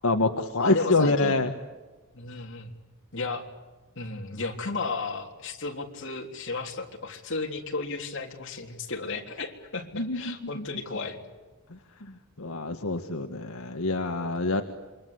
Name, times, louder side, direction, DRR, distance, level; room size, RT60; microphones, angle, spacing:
voice 1, 0.0-1.5 9.9-10.7 11.7-14.6, left 2 dB, 80° left, 5 dB, 1.6 m, -26 dB
voice 2, 0.6-1.4 2.1-2.7 3.1-3.4 4.0-11.2, left 3 dB, 60° left, 2 dB, 3.5 m, -34 dB
28.0 x 24.0 x 8.2 m, 1.2 s
head